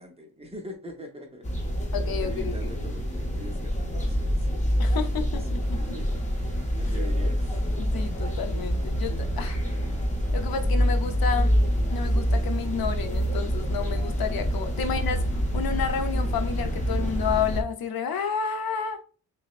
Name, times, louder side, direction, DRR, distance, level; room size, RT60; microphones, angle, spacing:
voice 1, 0.0-4.7 5.1-5.5 5.8-7.7 9.4-9.7 14.8-14.9, equal, 15° right, 0.7 m, -44 dB
sound 1, 1.4-17.6, equal, 20° left, 0.7 m, -26 dB
voice 2, 1.9-2.6 4.8-5.8 7.8-9.6 10.3-11.5 11.9-15.2 15.5-19.0, left 6 dB, 75° left, 0.6 m, -30 dB
Engine, 5.6-17.3, equal, 35° right, 1.6 m, -51 dB
6.0 x 2.1 x 2.4 m
wide cardioid pair, 150°, 36 cm